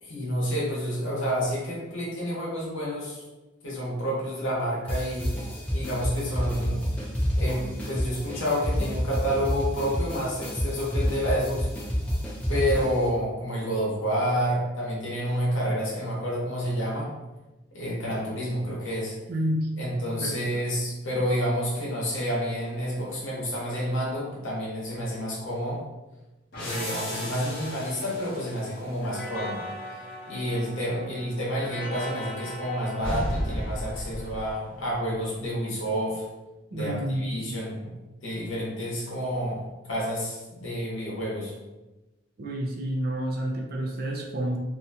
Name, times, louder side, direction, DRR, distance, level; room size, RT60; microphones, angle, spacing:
voice 1, 0.0-3.2 3.6-5.3 5.7-6.8 7.4-11.7 12.5-17.1 17.7-19.2 19.8-25.8 26.6-29.6 30.3-36.2 36.7-37.9 38.2-41.5, equal, 75° left, -5 dB, 1.0 m, -29 dB
sound 1, 4.9-13.1, equal, 5° left, 0.5 m, -29 dB
voice 2, 19.3-19.7 20.2-20.6 36.7-37.4 42.4-44.6, right 1 dB, 50° right, 0 dB, 0.4 m, -29 dB
sound 2, 26.5-35.0, left 1 dB, 50° left, 0.9 m, -35 dB
2.7 x 2.3 x 2.7 m, 1.1 s
head